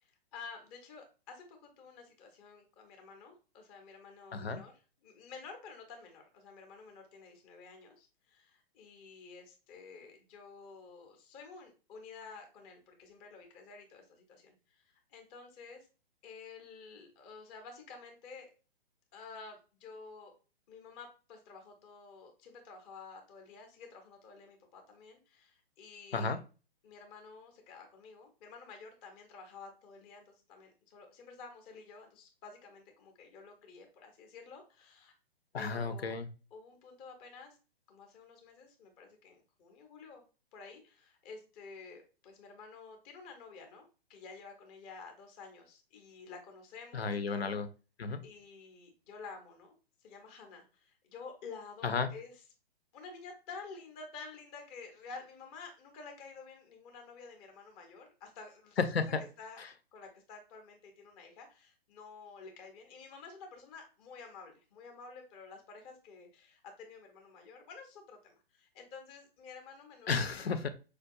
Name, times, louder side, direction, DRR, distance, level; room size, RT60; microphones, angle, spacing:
voice 1, 0.0-4.7 5.0-15.9 16.2-18.5 19.1-20.3 20.7-26.4 26.8-35.1 35.5-36.1 36.5-37.6 37.9-40.2 40.5-47.6 48.2-52.3 52.9-58.8 59.2-59.6 59.9-70.2, left 4 dB, 15° left, 4 dB, 0.5 m, -51 dB
voice 2, 4.3-4.6 26.1-26.4 35.5-36.3 46.9-47.7 48.0-48.2 51.8-52.1 58.8-59.2 59.6-59.7 70.1-70.7, left 4 dB, 80° left, 10 dB, 0.5 m, -33 dB
4.5 x 2.3 x 2.5 m, 0.34 s
figure-of-eight pair, 120°, 31 cm